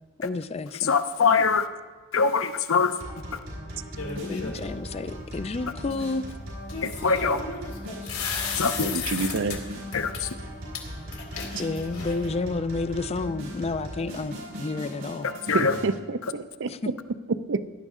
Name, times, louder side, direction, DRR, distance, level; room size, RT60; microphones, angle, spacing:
voice 1, 0.2-0.9 4.3-6.2 11.6-15.3 16.7-16.9, left 3 dB, 30° left, 13 dB, 0.4 m, -30 dB
voice 2, 0.8-1.7 2.1-2.9 6.8-7.4 8.6-8.9 9.9-10.3 15.5-15.7, left 5 dB, 65° left, 10 dB, 0.7 m, -23 dB
sound 1, 3.0-15.9, equal, 85° right, 5.1 m, -38 dB
sound 2, 4.0-4.7 6.7-9.6 9.9-10.2 10.7-10.8 11.1-12.3, left 5 dB, 85° left, 2.2 m, -34 dB
voice 3, 8.8-9.6 15.5-16.7 17.3-17.6, right 4 dB, 60° right, 14 dB, 0.5 m, -28 dB
17.0 x 11.0 x 3.7 m, 1.4 s
head